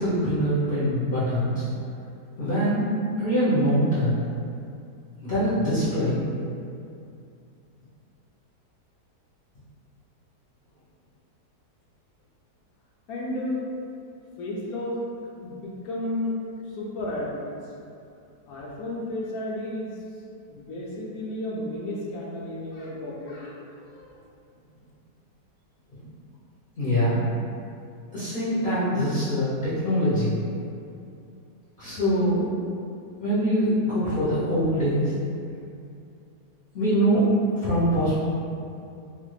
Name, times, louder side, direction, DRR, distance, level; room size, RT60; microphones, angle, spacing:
voice 1, 0.0-1.6 2.4-2.8 3.2-4.1 5.2-6.2 26.8-27.3 28.1-30.3 31.8-32.5 33.2-35.1 36.7-37.2 37.5-38.1, equal, 50° left, -12 dB, 0.6 m, -23 dB
voice 2, 13.1-13.6 14.4-15.0 15.4-16.4 16.7-17.6 18.5-20.0 20.5-24.2, left 1 dB, 70° left, -5 dB, 1.0 m, -32 dB
3.2 x 2.1 x 3.1 m, 2.5 s
omnidirectional pair, 1.8 m